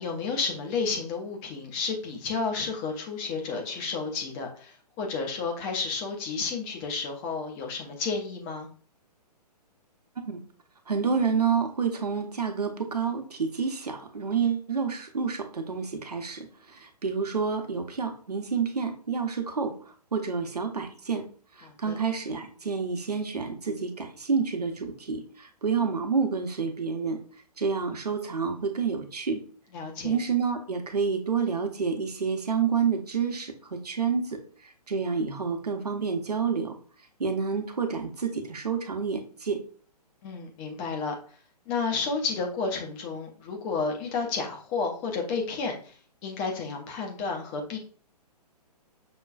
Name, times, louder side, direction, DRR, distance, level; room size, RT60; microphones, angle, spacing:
voice 1, 0.0-8.7 21.6-22.0 29.7-30.2 40.2-41.1 41.7-45.9 46.2-47.8, left 4 dB, 10° left, 2 dB, 0.3 m, -31 dB
voice 2, 10.9-19.7 20.1-21.3 21.6-27.2 27.6-29.4 30.0-36.8 37.2-39.6, right 5 dB, 70° right, 6 dB, 0.8 m, -29 dB
6.0 x 2.2 x 2.3 m, 0.42 s
figure-of-eight pair, 125°, 21 cm